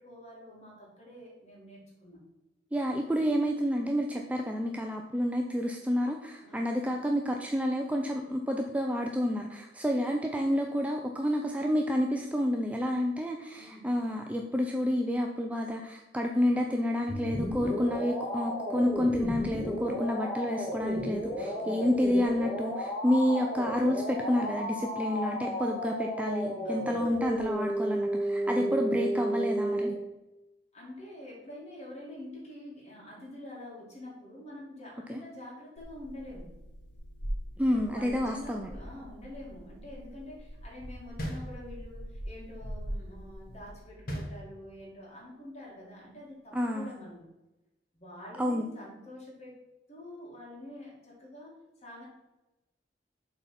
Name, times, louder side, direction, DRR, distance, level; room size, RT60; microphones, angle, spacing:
voice 1, 0.0-2.2 6.4-6.7 13.6-13.9 21.4-21.8 26.6-27.0 28.4-28.8 30.7-36.5 37.6-47.2 47.9-49.6 49.9-52.1, left 1 dB, 40° left, -4 dB, 2.3 m, -46 dB
voice 2, 2.7-29.9 35.1-35.2 37.6-38.7 46.5-46.9 48.4-48.7, equal, 10° right, 2 dB, 0.4 m, -29 dB
sound 1, 17.1-29.9, equal, 15° left, 1.8 m, -33 dB
sound 2, 35.8-43.8, equal, 85° left, 1.7 m, -42 dB
sound 3, 41.2-42.1 44.1-45.0, equal, 55° left, 1.6 m, -38 dB
7.2 x 4.1 x 5.7 m, 1.0 s
head